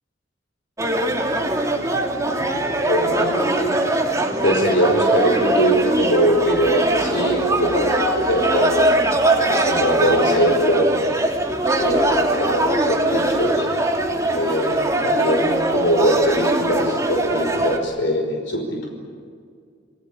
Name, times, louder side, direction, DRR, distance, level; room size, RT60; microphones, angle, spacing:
sound 1, 0.8-17.8, right 1 dB, 15° right, 2.8 m, -21 dB
voice 1, 2.9-3.8 4.4-8.9 9.3-10.9 11.8-13.7 14.3-18.9, equal, 80° left, 2 dB, 5.4 m, -22 dB
29.5 x 20.0 x 8.7 m, 2.1 s
head